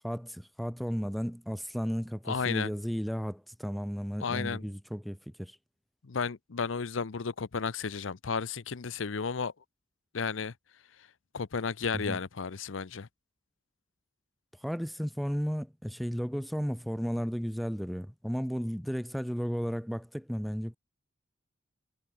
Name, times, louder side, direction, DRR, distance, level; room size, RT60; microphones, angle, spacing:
voice 1, 0.0-5.6 12.1-12.2 14.6-20.8, equal, ahead, 0.7 m, -34 dB
voice 2, 2.3-2.7 4.2-4.7 6.0-9.5 10.1-10.5 11.0-11.1 11.3-13.1, left 5 dB, 80° left, 0.7 m, -33 dB
head